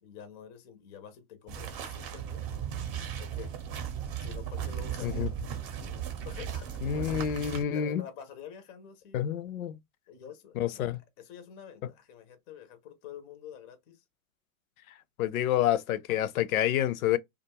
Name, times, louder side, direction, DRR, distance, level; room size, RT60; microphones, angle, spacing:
voice 1, 0.0-2.5 3.2-3.5 4.2-5.3 6.2-7.3 7.7-9.2 10.1-14.0, left 8 dB, 25° left, 0.4 m, -47 dB
sound 1, 1.5-7.6, right 8 dB, 35° right, 0.7 m, -36 dB
voice 2, 6.8-8.0 9.1-9.7 10.6-11.0 11.8-11.9 15.2-17.2, left 11 dB, 70° left, 0.5 m, -28 dB
2.4 x 2.3 x 2.8 m
hypercardioid pair, 135°, 43 cm